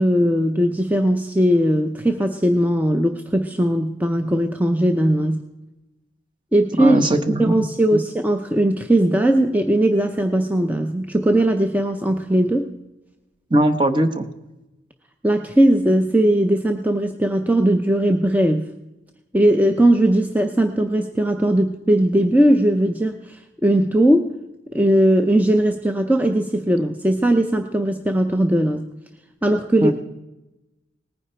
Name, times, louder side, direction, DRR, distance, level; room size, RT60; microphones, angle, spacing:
voice 1, 0.0-5.4 6.5-7.0 7.4-12.7 15.2-18.7 19.3-24.3 24.7-28.8 29.4-29.9, right 1 dB, 10° right, 5 dB, 0.6 m, -19 dB
voice 2, 6.8-7.7 7.9-8.0 13.5-14.3 29.8-29.9, right 1 dB, 25° right, 9 dB, 0.9 m, -19 dB
19.0 x 9.8 x 4.4 m, 0.98 s
head